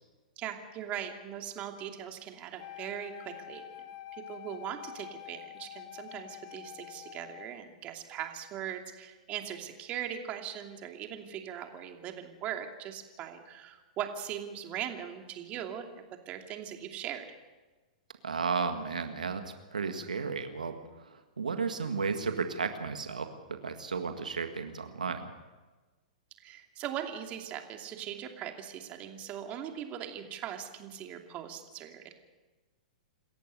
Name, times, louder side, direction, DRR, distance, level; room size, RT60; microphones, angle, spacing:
voice 1, 0.4-3.6 4.1-17.3 26.4-32.1, right 10 dB, 35° right, 4 dB, 2.7 m, -40 dB
Wind instrument woodwind instrument, 2.6-7.6, left 12 dB, 50° left, 1.9 m, -47 dB
voice 2, 18.2-25.3, right 5 dB, 90° right, 7 dB, 1.8 m, -34 dB
27.5 x 14.5 x 6.9 m, 1.2 s
hypercardioid pair, 120°, 4 cm